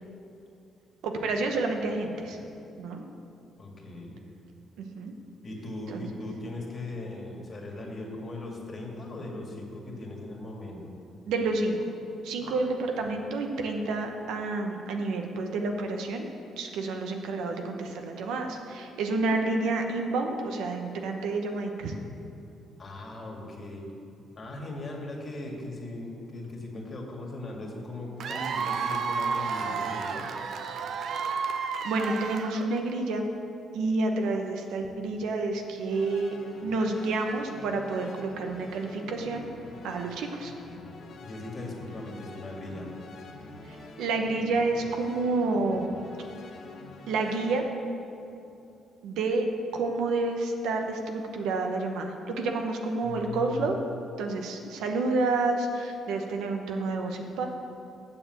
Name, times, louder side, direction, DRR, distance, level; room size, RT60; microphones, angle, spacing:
voice 1, 1.0-2.4 2.8-3.0 4.8-5.1 5.9-6.1 11.3-11.8 12.2-16.3 16.6-21.9 31.8-33.3 33.7-36.3 36.6-39.5 39.8-40.5 43.7-45.9 47.1-47.7 49.0-49.5 49.7-53.8 54.2-57.5, right 3 dB, 85° right, 3 dB, 1.0 m, -29 dB
voice 2, 3.6-4.1 5.4-10.9 12.4-12.5 13.0-13.2 22.8-23.9 24.4-30.3 41.2-42.9 53.0-53.7, left 2 dB, 40° left, -1 dB, 2.0 m, -39 dB
Cheering / Applause / Crowd, 28.2-32.9, right 5 dB, 65° right, 0.6 m, -31 dB
sound 1, 35.9-47.6, left 3 dB, 60° left, 1.4 m, -46 dB
7.5 x 6.9 x 7.6 m, 2.7 s
cardioid pair, 90°, 0 cm